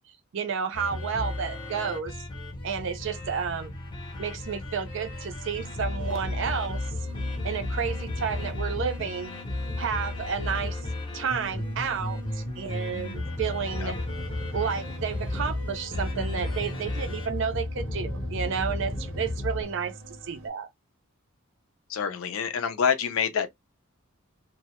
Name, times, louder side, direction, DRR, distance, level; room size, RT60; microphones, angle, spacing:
voice 1, 0.3-2.2 2.6-3.8 4.2-6.8 7.4-9.3 9.8-10.8 11.1-14.0 14.5-19.9 20.3-20.7, right 6 dB, 60° right, 0.4 m, -31 dB
sound 1, 0.7-19.6, left 2 dB, 20° left, 0.6 m, -33 dB
sound 2, 5.6-20.5, left 1 dB, 90° right, 0.8 m, -44 dB
voice 2, 21.9-23.5, left 7 dB, 70° left, 0.4 m, -27 dB
2.1 x 2.0 x 2.8 m
head